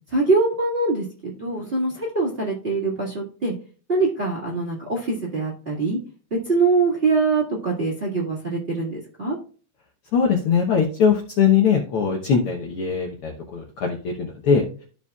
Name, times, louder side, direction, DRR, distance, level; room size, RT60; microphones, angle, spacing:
voice 1, 0.1-1.0 1.4-3.5 3.9-6.0 6.4-9.4, right 3 dB, 25° right, -4 dB, 1.7 m, -23 dB
voice 2, 10.1-14.6, left 6 dB, 65° left, 0 dB, 1.5 m, -21 dB
14.0 x 4.8 x 2.3 m, 0.40 s
omnidirectional pair, 3.4 m